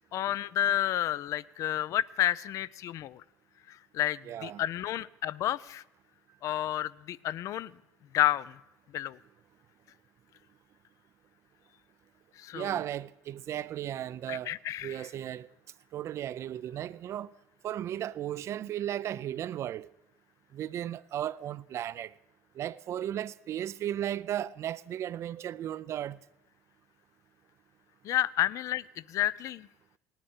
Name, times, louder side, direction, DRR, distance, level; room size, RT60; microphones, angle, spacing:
voice 1, 0.1-3.2 3.7-5.8 6.4-7.7 8.1-8.6 8.9-9.2 12.4-12.7 14.3-15.0 28.0-29.7, left 13 dB, 55° left, 0.4 m, -30 dB
voice 2, 4.2-4.6 12.5-14.5 14.8-15.5 15.9-17.3 17.6-19.9 20.5-22.1 22.6-26.2, right 11 dB, 45° right, 0.4 m, -35 dB
18.0 x 8.8 x 7.1 m
supercardioid pair, 105°, 6 cm